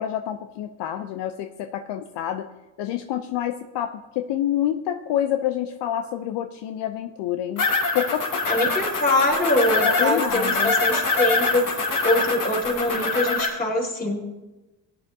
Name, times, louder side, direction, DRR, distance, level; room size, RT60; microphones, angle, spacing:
voice 1, 0.0-2.5 2.8-7.7 7.9-8.4 9.8-10.7, left 11 dB, 60° left, 7 dB, 0.7 m, -27 dB
sound 1, 7.6-13.5, left 3 dB, 45° left, 2.6 m, -24 dB
voice 2, 8.5-14.2, left 1 dB, 20° left, -1 dB, 3.7 m, -23 dB
17.0 x 9.2 x 2.8 m, 1.1 s
supercardioid pair, 80°, 46 cm